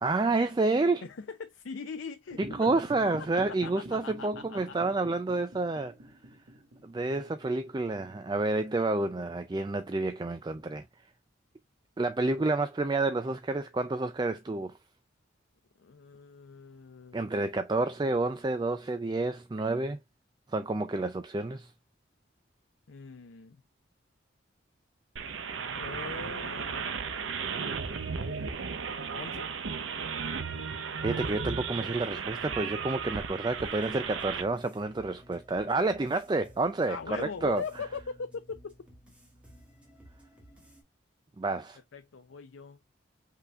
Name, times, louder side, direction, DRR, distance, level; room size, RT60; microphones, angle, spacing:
voice 1, 0.0-1.0 2.4-6.0 6.8-10.8 12.0-14.7 17.1-20.0 20.5-21.7 31.0-37.6 41.4-41.8, right 2 dB, 20° right, 0.3 m, -29 dB
voice 2, 1.0-2.7 3.3-4.7 15.8-17.3 22.9-23.6 25.7-27.1 29.1-29.5 36.9-38.7 41.9-42.8, left 5 dB, 80° left, 0.5 m, -41 dB
sound 1, 2.3-8.9, right 1 dB, 70° right, 1.1 m, -47 dB
sound 2, 25.2-34.4, right 5 dB, 85° right, 0.7 m, -35 dB
sound 3, 33.6-40.8, equal, 5° right, 1.6 m, -56 dB
5.6 x 3.8 x 2.3 m
head